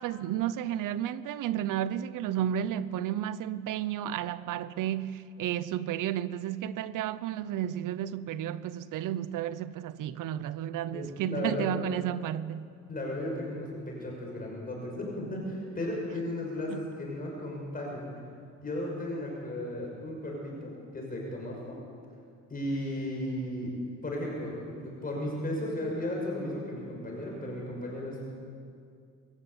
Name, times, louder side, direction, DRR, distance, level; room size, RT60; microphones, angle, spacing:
voice 1, 0.0-12.7 16.7-16.9, right 11 dB, 80° right, 0.9 m, -32 dB
voice 2, 10.9-11.7 12.9-18.1 18.6-21.8 22.5-23.7 24.0-28.4, left 1 dB, 30° left, 5.9 m, -35 dB
25.0 x 15.0 x 8.3 m
cardioid pair, 130°, 31 cm